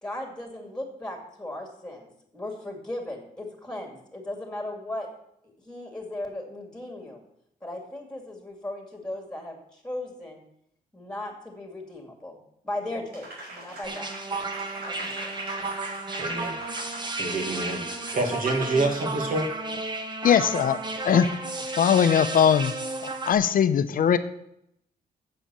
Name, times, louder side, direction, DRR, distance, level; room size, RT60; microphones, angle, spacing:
voice 1, 0.0-5.1 5.6-7.2 7.6-10.4 10.9-12.4 12.6-14.1 14.8-15.4, left 1 dB, 5° left, 2 dB, 2.5 m, -37 dB
Applause, 13.1-18.7, right 1 dB, 80° right, 4.5 m, -42 dB
sound 1, 13.8-23.3, right 2 dB, 25° right, 1.1 m, -33 dB
voice 2, 16.2-16.6 17.2-17.9 18.1-19.5, right 2 dB, 60° right, 3 dB, 2.1 m, -27 dB
voice 3, 20.2-20.8 21.0-21.3 21.7-22.7 23.0-24.2, left 8 dB, 60° left, 11 dB, 0.7 m, -20 dB
7.7 x 7.5 x 6.9 m, 0.76 s
cardioid pair, 125°, 16 cm